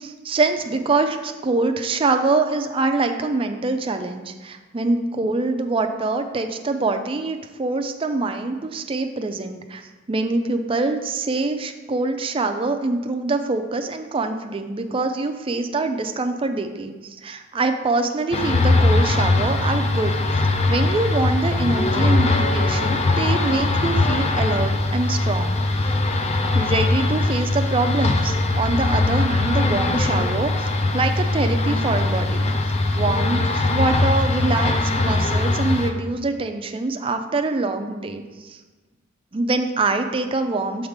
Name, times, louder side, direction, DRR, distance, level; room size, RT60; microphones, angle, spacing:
voice 1, 0.0-9.8 10.1-25.6 26.5-32.5 33.0-38.6 39.3-40.9, right 3 dB, 25° right, 6 dB, 0.4 m, -24 dB
sound 1, 18.3-35.9, left 2 dB, 30° left, 0.5 m, -21 dB
7.1 x 3.6 x 4.8 m, 1.3 s
head